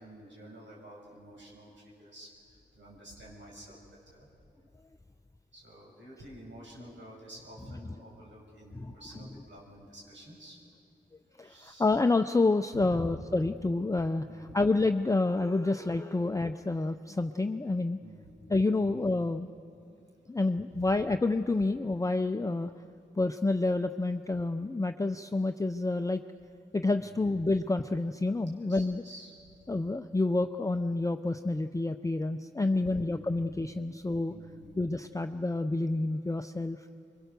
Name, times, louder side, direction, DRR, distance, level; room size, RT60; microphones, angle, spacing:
voice 1, 0.0-2.3 2.7-4.3 5.5-10.6 11.4-12.0 12.7-13.0 14.3-14.7 18.0-18.2 18.8-19.0 20.7-20.9 27.0-27.2 28.5-29.3 32.8-33.2 34.3-34.8, equal, 90° right, -3 dB, 6.3 m, -49 dB
voice 2, 11.4-18.0 18.5-19.5 20.3-22.7 23.2-26.2 26.7-29.0 29.7-34.3 34.8-36.9, left 2 dB, 15° left, 7 dB, 0.5 m, -28 dB
24.0 x 22.5 x 6.8 m, 2.6 s
wide cardioid pair, 75°, 19 cm